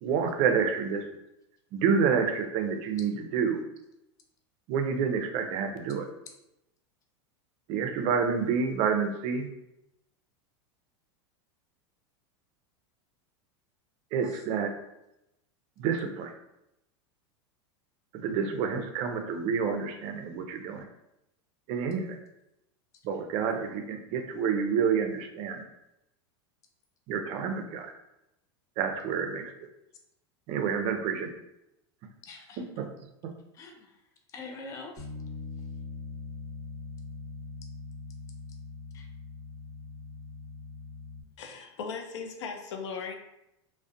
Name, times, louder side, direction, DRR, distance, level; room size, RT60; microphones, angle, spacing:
voice 1, 0.0-1.0 1.7-3.6 4.7-6.0 7.7-9.5 14.1-14.7 15.8-16.3 18.2-20.9 21.7-22.2 23.0-25.6 27.1-27.9 28.8-29.5 30.5-31.3 32.8-32.9, right 6 dB, 50° right, 5 dB, 0.4 m, -28 dB
voice 2, 32.2-32.6 33.5-34.0 34.3-35.1 38.9-39.1, left 3 dB, 20° left, 2 dB, 0.3 m, -45 dB
Bass guitar, 35.0-41.2, left 4 dB, 55° left, 0.9 m, -42 dB
voice 3, 41.4-43.1, left 5 dB, 85° left, 4 dB, 0.4 m, -37 dB
2.4 x 2.1 x 2.5 m, 0.86 s
supercardioid pair, 120°, 15 cm